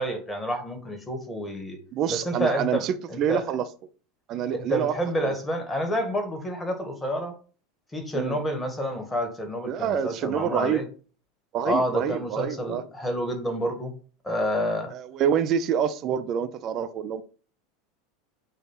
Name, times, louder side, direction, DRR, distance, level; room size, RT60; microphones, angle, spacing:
voice 1, 0.0-1.8 2.1-3.4 4.5-7.4 7.9-10.9 11.7-13.9 14.2-14.9, equal, 15° left, 1.9 m, -29 dB
voice 2, 1.9-3.7 4.3-4.9 5.2-5.3 8.1-8.4 9.7-10.8 11.5-12.8 14.9-17.2, right 8 dB, 45° right, 0.7 m, -27 dB
7.3 x 2.7 x 5.7 m
hypercardioid pair, 85°, 0 cm